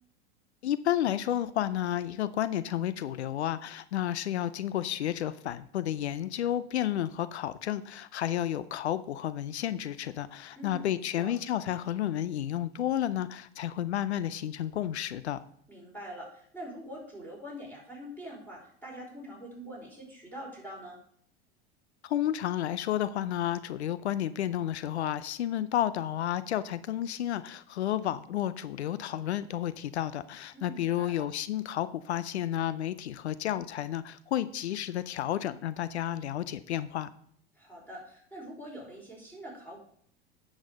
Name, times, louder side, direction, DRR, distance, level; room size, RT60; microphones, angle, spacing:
voice 1, 0.6-15.4 22.0-37.1, left 11 dB, 85° left, 15 dB, 0.5 m, -31 dB
voice 2, 10.6-11.3 15.7-21.0 30.5-31.3 37.5-39.8, equal, 5° left, -3 dB, 4.5 m, -44 dB
9.4 x 6.3 x 5.1 m, 0.62 s
hypercardioid pair, 90°, 32 cm